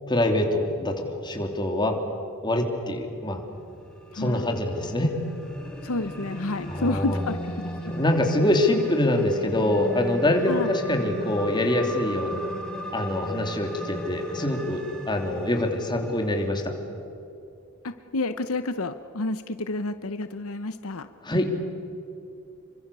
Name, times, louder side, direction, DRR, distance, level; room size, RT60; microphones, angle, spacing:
voice 1, 0.1-2.0 2.4-3.4 4.1-5.1 6.7-7.2 7.9-12.5 12.9-16.7 21.2-21.5, left 1 dB, 20° left, 3 dB, 3.0 m, -25 dB
sound 1, 3.4-16.5, equal, 5° left, 3.7 m, -37 dB
voice 2, 4.1-4.5 5.8-7.9 10.5-10.7 17.8-21.1, left 2 dB, 70° left, 11 dB, 0.9 m, -30 dB
28.0 x 24.5 x 6.9 m, 2.9 s
head